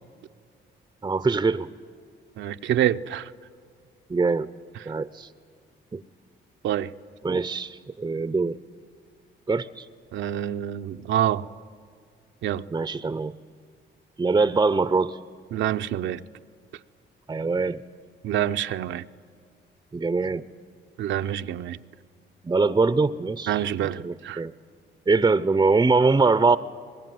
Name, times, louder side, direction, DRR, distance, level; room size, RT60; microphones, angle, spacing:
voice 1, 1.0-1.7 4.1-4.5 4.9-5.3 5.9-6.0 7.2-8.6 9.5-9.9 12.7-13.3 14.2-15.2 17.3-17.8 19.9-20.5 22.4-24.5 25.1-26.6, right 4 dB, 20° right, 14 dB, 0.6 m, -23 dB
voice 2, 2.4-3.3 6.6-6.9 10.1-11.4 12.4-12.7 15.5-16.2 18.2-19.1 21.0-21.8 23.5-24.4, right 11 dB, 70° right, 8 dB, 0.7 m, -26 dB
24.0 x 20.5 x 9.3 m, 2.1 s
cardioid pair, 90°, 20 cm